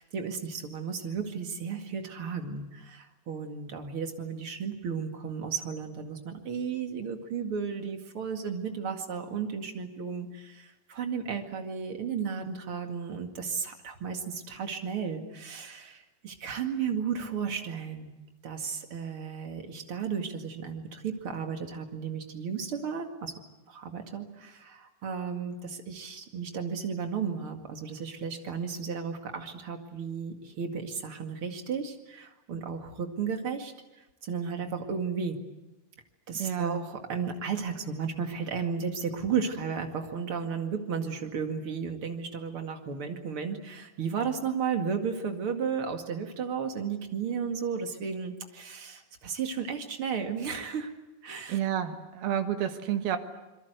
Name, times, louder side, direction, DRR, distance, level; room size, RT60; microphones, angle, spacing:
voice 1, 0.0-18.1 18.4-23.3 23.7-33.7 34.2-35.4 36.3-50.9 51.2-51.6, right 6 dB, 40° right, 5 dB, 2.6 m, -34 dB
voice 2, 36.4-36.8 51.5-53.2, right 10 dB, 85° right, 7 dB, 3.6 m, -30 dB
27.0 x 22.5 x 8.1 m, 1.0 s
omnidirectional pair, 4.2 m